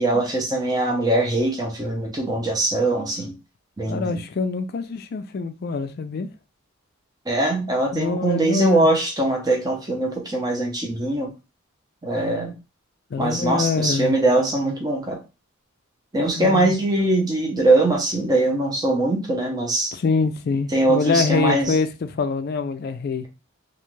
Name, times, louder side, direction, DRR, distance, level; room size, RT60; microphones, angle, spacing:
voice 1, 0.0-3.3 3.8-4.2 7.3-11.3 12.0-12.5 13.2-15.2 16.1-19.9 20.7-21.8, right 2 dB, 15° right, 0.6 m, -22 dB
voice 2, 3.9-6.3 7.9-8.9 13.1-14.1 16.3-16.8 19.9-23.3, left 4 dB, 45° left, 0.3 m, -24 dB
2.5 x 2.3 x 3.1 m
head